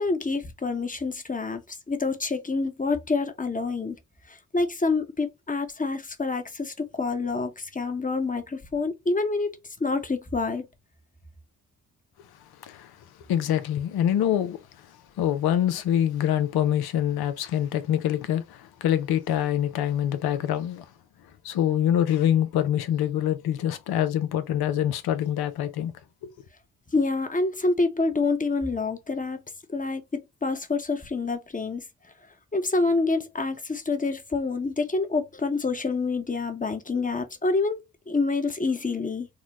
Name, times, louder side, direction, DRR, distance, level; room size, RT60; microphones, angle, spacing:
voice 1, 0.0-4.0 4.3-10.6 26.9-29.4 29.7-31.8 32.5-39.3, left 3 dB, 20° left, 0.9 m, -27 dB
voice 2, 13.3-14.6 15.2-20.9 21.4-25.9 26.2-26.3, left 10 dB, 80° left, 0.6 m, -25 dB
3.7 x 2.1 x 2.9 m
supercardioid pair, 40°, 37 cm